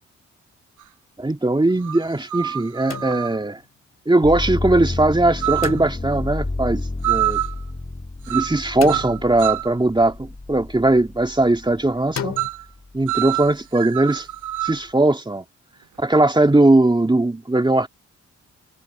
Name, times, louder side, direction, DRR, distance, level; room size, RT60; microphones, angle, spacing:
sound 1, 0.8-0.9 1.8-3.4 5.4-5.8 7.0-7.6 8.3-8.6 8.9-9.8 12.4-12.6 13.1-14.9, right 15 dB, 85° right, 0.8 m, -26 dB
voice 1, 1.2-3.6 4.1-7.4 8.3-12.4 12.9-14.3 14.6-15.4 16.0-17.9, right 2 dB, 15° right, 2.4 m, -19 dB
sound 2, 2.9-3.7 5.6-6.3 8.8-9.7 12.2-12.5, left 7 dB, 60° left, 2.6 m, -33 dB
sound 3, 4.2-12.0 12.5-13.3, left 2 dB, 20° left, 3.7 m, -31 dB
cardioid pair, 65°, 30 cm